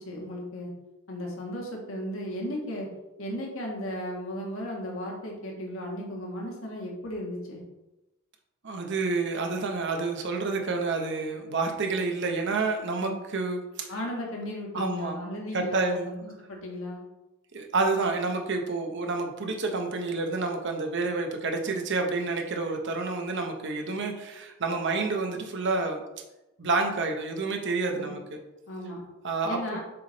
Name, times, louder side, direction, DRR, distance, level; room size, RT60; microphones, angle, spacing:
voice 1, 0.0-0.7 1.1-2.9 3.2-7.6 13.0-13.1 13.9-17.0 27.9-28.2 28.7-29.0 29.4-29.8, equal, 65° left, -1 dB, 1.5 m, -35 dB
voice 2, 8.6-13.9 14.7-15.1 15.5-16.2 17.5-26.0 26.6-28.2 29.2-29.8, right 3 dB, 60° right, 3 dB, 0.8 m, -29 dB
6.8 x 3.6 x 3.9 m, 1.0 s
head